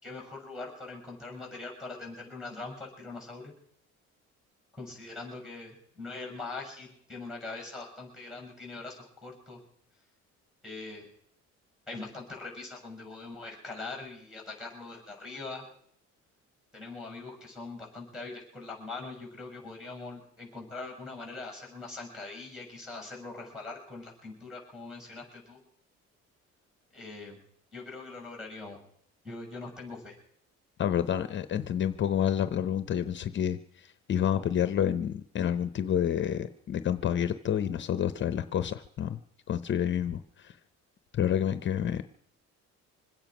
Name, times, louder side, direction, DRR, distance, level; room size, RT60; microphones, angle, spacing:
voice 1, 0.0-3.5 4.8-9.6 10.6-11.1 11.9-15.7 16.7-25.6 26.9-27.4 27.7-28.8 29.2-30.2, left 3 dB, ahead, 0 dB, 6.8 m, -42 dB
voice 2, 30.8-33.6 34.1-39.2 39.5-40.5 41.1-42.0, left 9 dB, 40° left, 12 dB, 0.7 m, -29 dB
25.5 x 8.9 x 6.0 m, 0.67 s
cardioid pair, 155°, 29 cm